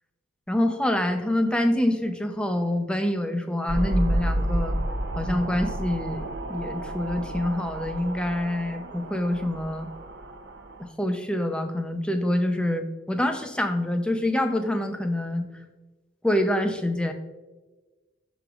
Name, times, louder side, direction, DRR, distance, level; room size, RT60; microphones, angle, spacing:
voice 1, 0.5-4.8 5.2-9.9 10.8-15.5 16.2-17.1, left 1 dB, 5° left, 6 dB, 0.6 m, -26 dB
sound 1, 3.7-10.8, right 1 dB, 70° right, 0.7 m, -30 dB
12.0 x 5.1 x 2.4 m, 1.2 s
head